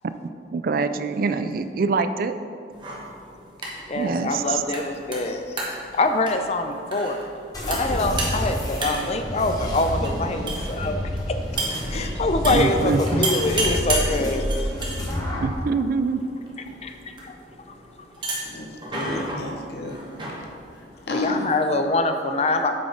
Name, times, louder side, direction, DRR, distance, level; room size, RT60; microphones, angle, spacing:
voice 1, 0.5-2.3 3.9-4.6 12.5-13.3 15.4-16.2, right 4 dB, 55° right, 11 dB, 0.3 m, -24 dB
sound 1, 2.7-21.6, right 2 dB, 25° right, 1.2 m, -34 dB
voice 2, 3.9-5.6 5.9-7.2 7.7-11.0 11.3-11.4 11.9-14.4 16.8-17.3 21.1-22.7, left 2 dB, 35° left, 6 dB, 0.5 m, -24 dB
sound 2, 7.5-15.6, equal, 20° left, 1.2 m, -28 dB
voice 3, 18.4-20.0 21.1-21.5, left 2 dB, 65° left, 1 dB, 0.8 m, -31 dB
7.6 x 4.2 x 5.2 m, 2.5 s
head